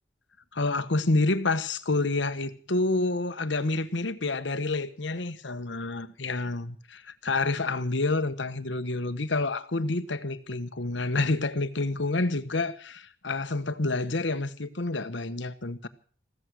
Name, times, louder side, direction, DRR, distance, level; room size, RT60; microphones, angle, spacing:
voice 1, 0.5-15.9, left 2 dB, 75° left, 1.2 m, -28 dB
15.0 x 14.0 x 6.4 m
head